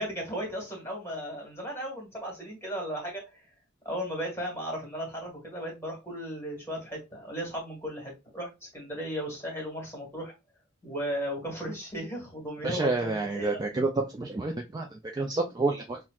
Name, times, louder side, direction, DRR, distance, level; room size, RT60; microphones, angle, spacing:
voice 1, 0.0-3.5 3.8-10.3 10.8-13.6, equal, 10° left, -1 dB, 1.5 m, -36 dB
voice 2, 12.6-16.0, right 3 dB, 20° right, 1 dB, 0.3 m, -29 dB
5.7 x 2.1 x 2.3 m, 0.25 s
head